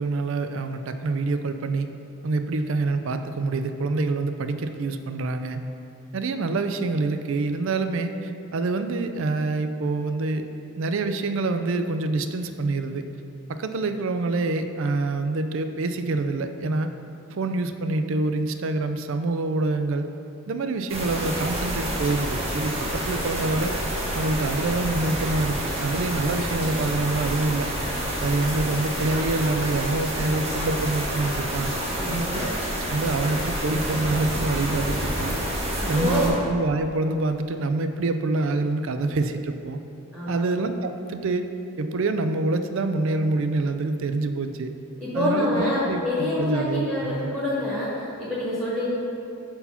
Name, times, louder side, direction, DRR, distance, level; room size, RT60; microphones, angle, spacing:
voice 1, 0.0-1.9 2.2-5.6 6.1-10.5 10.8-13.0 13.5-16.9 17.3-20.1 20.5-23.7 24.1-27.7 28.2-31.7 32.1-32.5 32.9-35.3 35.9-39.8 40.3-41.5 41.8-44.7 45.1-47.4, right 3 dB, 60° right, 8 dB, 0.4 m, -26 dB
sound 1, 20.9-36.3, equal, 25° right, 1.1 m, -28 dB
voice 2, 31.8-32.5 35.8-36.3 40.1-40.5 45.0-48.9, left 1 dB, 10° right, -9 dB, 1.3 m, -27 dB
5.7 x 4.4 x 5.5 m, 2.7 s
head